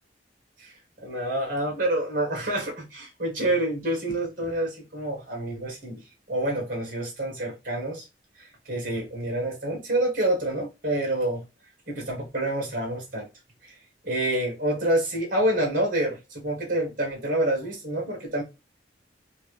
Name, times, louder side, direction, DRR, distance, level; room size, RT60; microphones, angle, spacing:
voice 1, 1.0-6.0 6.3-8.0 8.4-11.4 11.9-13.3 13.6-13.7 14.0-18.4, right 1 dB, 50° right, 1.4 m, -27 dB
3.2 x 2.6 x 3.1 m
head